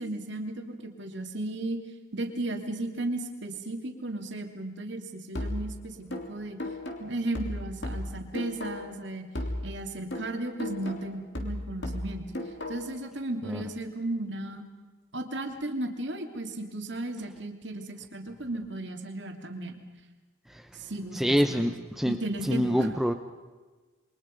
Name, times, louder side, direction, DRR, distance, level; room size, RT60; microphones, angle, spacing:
voice 1, 0.0-1.8 2.1-6.6 7.0-9.2 9.6-12.3 12.7-14.6 15.1-19.8 20.7-21.7 22.0-22.9, right 2 dB, 60° right, 4 dB, 2.8 m, -35 dB
sound 1, 5.3-9.0 9.3-13.0, left 1 dB, 60° left, 3.2 m, -36 dB
voice 2, 21.2-22.2 22.5-23.1, equal, ahead, 7 dB, 0.8 m, -25 dB
28.5 x 23.0 x 5.3 m, 1.3 s
head